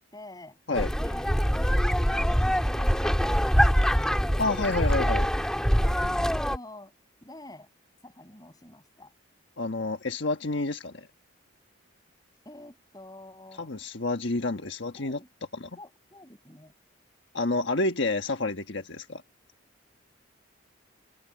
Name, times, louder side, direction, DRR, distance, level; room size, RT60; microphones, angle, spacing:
voice 1, 0.1-0.6 1.0-4.5 5.8-6.9 7.2-7.7 8.0-9.1 12.4-13.7 14.6-14.7 15.0-15.3 15.8-16.7, left 1 dB, 20° left, 6.6 m, -47 dB
sound 1, 0.7-6.6, equal, 5° left, 1.9 m, -24 dB
voice 2, 4.4-5.3 9.6-11.1 13.6-15.2 15.5-15.8 17.3-19.2, left 2 dB, 65° left, 1.4 m, -29 dB
head